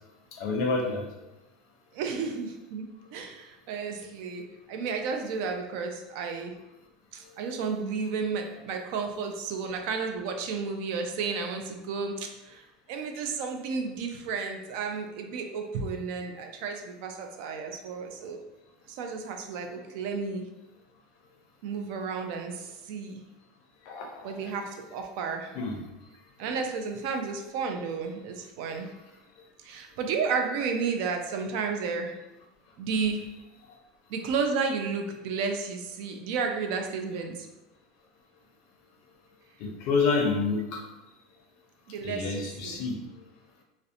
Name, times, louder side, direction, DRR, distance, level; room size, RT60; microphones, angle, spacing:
voice 1, 0.4-1.0 23.9-24.0 25.6-25.8 39.6-40.6 42.0-43.0, left 4 dB, 50° left, 2 dB, 0.5 m, -27 dB
voice 2, 1.9-2.9 3.1-4.4 4.7-6.5 7.1-18.4 18.9-20.5 21.6-23.2 24.2-25.5 26.4-28.9 29.6-32.1 32.8-33.3 34.1-37.5 41.9-42.8, right 5 dB, 55° right, 4 dB, 0.3 m, -32 dB
2.5 x 2.0 x 2.7 m, 0.97 s
supercardioid pair, 170°, 0 cm